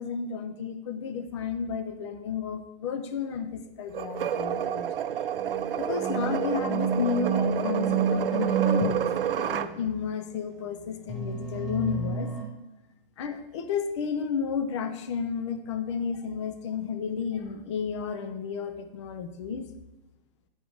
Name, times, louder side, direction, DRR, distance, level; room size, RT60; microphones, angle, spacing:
voice 1, 0.0-4.9 5.8-12.3 13.2-19.6, left 6 dB, 30° left, 8 dB, 0.6 m, -32 dB
sound 1, 3.9-9.7, right 9 dB, 70° right, 0.6 m, -29 dB
sound 2, 5.4-8.9 11.1-12.4, right 5 dB, ahead, 1.1 m, -29 dB
10.5 x 5.2 x 4.8 m, 1.0 s
hypercardioid pair, 165°, 29 cm